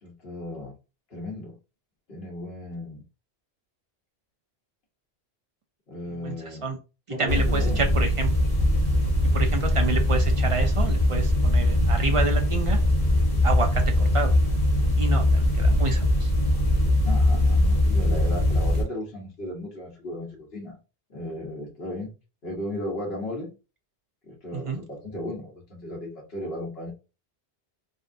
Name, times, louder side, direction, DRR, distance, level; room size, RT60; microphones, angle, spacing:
voice 1, 0.0-0.7 1.1-1.6 2.1-3.0 5.9-6.7 7.1-7.9 17.0-20.8 21.1-22.1 22.4-23.6 24.2-26.9, left 1 dB, 65° left, -2 dB, 1.3 m, -35 dB
voice 2, 6.2-6.8 7.2-8.3 9.0-12.8 13.4-14.4 15.0-16.3 24.5-24.8, right 4 dB, 50° right, 5 dB, 0.4 m, -29 dB
sound 1, 7.3-18.8, left 1 dB, 20° left, 1.4 m, -21 dB
3.5 x 2.4 x 2.6 m, 0.31 s
omnidirectional pair, 1.1 m